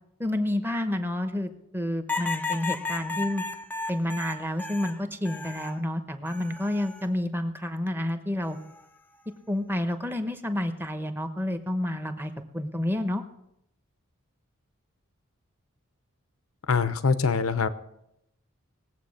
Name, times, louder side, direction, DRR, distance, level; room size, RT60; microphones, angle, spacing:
voice 1, 0.2-3.4 3.9-8.6 9.5-13.3, left 1 dB, 10° right, 8 dB, 0.9 m, -29 dB
sound 1, 2.1-5.8 6.3-7.1 8.4-8.8, left 4 dB, 10° left, 0.5 m, -34 dB
voice 2, 16.7-17.7, left 5 dB, 80° left, 13 dB, 0.8 m, -23 dB
19.5 x 7.8 x 6.5 m, 0.82 s
head